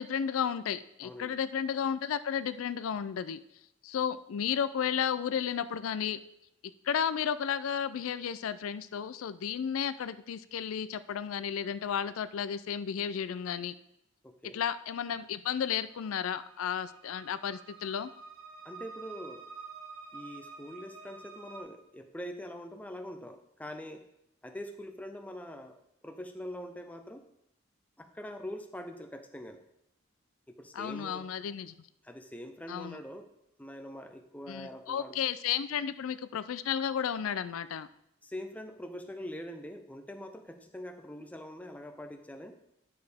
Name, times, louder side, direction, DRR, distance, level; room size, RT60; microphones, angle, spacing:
voice 1, 0.0-3.4 3.8-6.2 6.8-13.7 14.5-18.1 30.7-31.7 32.7-33.0 34.5-37.9, left 8 dB, 90° left, 13 dB, 0.4 m, -33 dB
voice 2, 1.0-1.4 14.2-14.6 18.6-19.5 20.1-24.1 24.4-27.2 28.0-29.6 30.5-31.3 32.0-33.3 33.6-35.1 38.2-42.5, left 1 dB, 5° left, 6 dB, 0.6 m, -43 dB
sound 1, 15.9-21.6, right 5 dB, 35° right, 1.4 m, -49 dB
9.7 x 6.7 x 3.5 m, 0.78 s
head